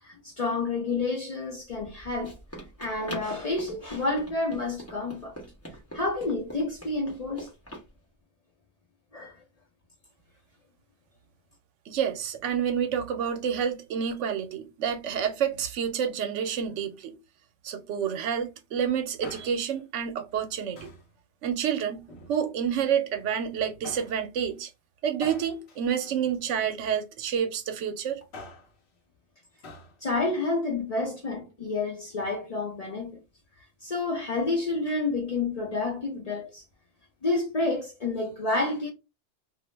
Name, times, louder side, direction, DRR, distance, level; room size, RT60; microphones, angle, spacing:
voice 1, 0.0-2.3 2.8-5.4 5.9-7.5 9.1-9.4 30.0-33.2 33.8-36.6 37.2-38.9, left 3 dB, 45° left, 0.5 m, -29 dB
Run, 1.7-7.9, right 1 dB, 15° left, 0.8 m, -43 dB
voice 2, 11.9-17.2 17.6-20.9 21.4-24.7 25.0-28.2, right 8 dB, 80° right, 0.9 m, -29 dB
Male speech man speaking, 19.0-19.8 20.8-21.1 21.9-22.7 23.8-24.2 25.2-26.9 28.1-28.8 29.6-30.0 30.2-30.3, left 2 dB, 65° left, 1.1 m, -46 dB
2.4 x 2.0 x 3.1 m
omnidirectional pair, 1.2 m